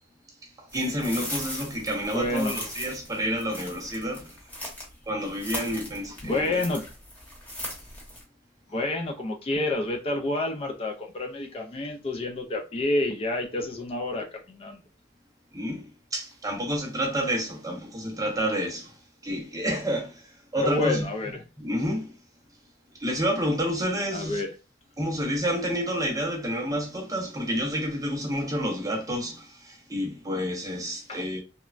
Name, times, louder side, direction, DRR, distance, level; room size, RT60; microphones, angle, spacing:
voice 1, 0.6-4.4 5.1-6.6 15.5-19.0 19.2-21.1 21.6-22.2 23.0-24.4 25.0-31.4, equal, 20° right, 0.7 m, -29 dB
sound 1, 0.7-4.9 5.2-8.2, left 1 dB, 10° left, 0.9 m, -38 dB
voice 2, 2.1-2.5 6.2-6.8 8.7-14.8 20.6-21.4 24.1-24.5 31.1-31.2, left 2 dB, 30° left, 0.3 m, -29 dB
3.0 x 2.1 x 2.4 m
head